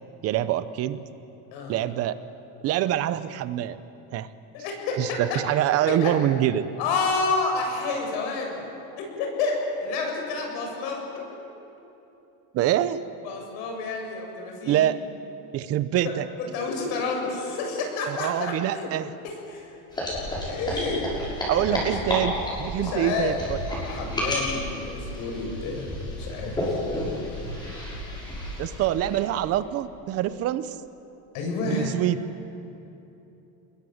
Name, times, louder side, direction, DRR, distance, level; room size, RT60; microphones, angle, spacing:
voice 1, 0.2-1.0 1.7-2.1 2.6-3.8 4.1-4.3 5.0-6.6 12.5-13.0 14.7-15.0 15.5-16.3 18.1-19.1 21.5-22.3 22.6-23.6 28.6-30.8 31.7-32.2, right 12 dB, 35° right, 14 dB, 0.8 m, -25 dB
voice 2, 4.5-5.4 5.9-6.1 6.8-8.7 9.0-11.0 13.2-14.9 16.0-18.9 19.2-19.7 20.5-21.1 21.5-21.9 22.8-23.4 23.8-25.9 26.2-26.8 31.3-31.9, left 3 dB, 70° left, 1 dB, 7.3 m, -29 dB
sound 1, 19.9-29.4, left 1 dB, 10° left, 6.5 m, -31 dB
28.0 x 21.0 x 8.0 m, 3.0 s
cardioid pair, 170°, 42 cm